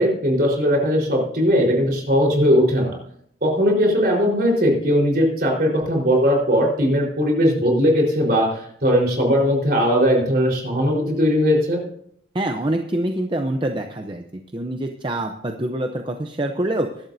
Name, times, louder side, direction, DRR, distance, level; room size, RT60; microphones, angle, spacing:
voice 1, 0.0-2.9 3.4-11.8, equal, 50° right, -1 dB, 4.2 m, -19 dB
voice 2, 12.3-16.9, right 1 dB, 25° right, 4 dB, 0.7 m, -25 dB
22.0 x 11.5 x 2.7 m, 0.69 s
head